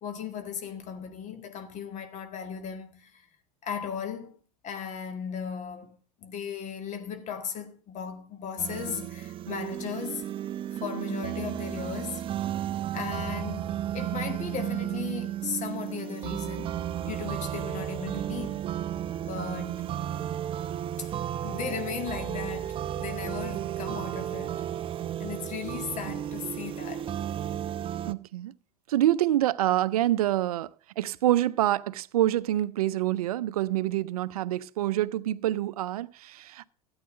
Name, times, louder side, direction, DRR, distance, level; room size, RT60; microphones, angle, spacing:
voice 1, 0.0-3.3 3.6-4.4 4.6-10.3 10.7-12.2 12.9-18.7 19.3-19.9 21.0-21.1 21.4-24.7 25.2-27.1, left 7 dB, 40° left, 1.8 m, -37 dB
sound 1, 8.6-28.1, right 11 dB, 30° right, 0.5 m, -33 dB
voice 2, 28.1-28.5 28.9-36.7, right 13 dB, 70° right, 0.5 m, -26 dB
13.0 x 8.8 x 5.1 m
hypercardioid pair, 85°, 19 cm